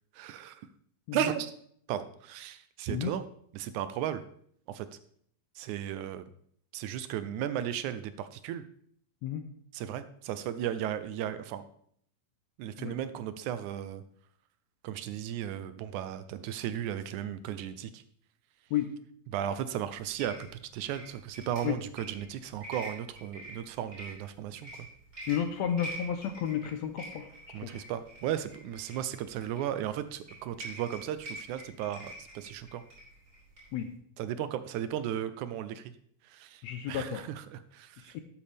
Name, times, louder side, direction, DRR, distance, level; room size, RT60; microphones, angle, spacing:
voice 1, 0.1-0.7 1.1-1.5 1.9-3.2 3.5-4.2 4.7-4.9 5.6-6.3 6.7-8.6 9.7-11.6 12.6-14.0 14.8-18.0 19.3-24.9 27.5-32.8 34.2-35.9 36.2-38.2, right 10 dB, 80° right, 12 dB, 1.9 m, -35 dB
sound 1, 19.9-33.9, right 1 dB, 25° right, 5.4 m, -47 dB
voice 2, 25.3-27.8 33.7-33.9 36.6-37.3 38.1-38.2, left 9 dB, 75° left, 8 dB, 1.7 m, -32 dB
12.5 x 8.6 x 3.4 m, 0.64 s
omnidirectional pair, 3.6 m